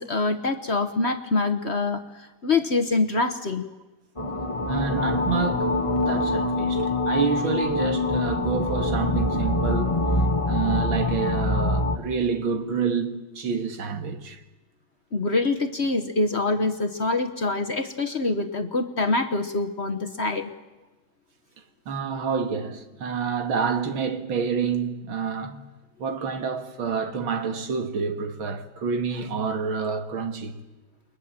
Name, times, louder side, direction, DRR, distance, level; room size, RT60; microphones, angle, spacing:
voice 1, 0.0-2.0 2.4-3.6 15.1-20.5, left 3 dB, 40° left, 1.2 m, -25 dB
sound 1, 4.2-12.0, left 2 dB, 20° left, 1.0 m, -24 dB
voice 2, 4.7-5.7 6.1-10.1 10.5-14.4 21.9-25.6 26.0-30.6, right 6 dB, 80° right, 2.4 m, -28 dB
29.5 x 23.0 x 7.5 m
omnidirectional pair, 2.2 m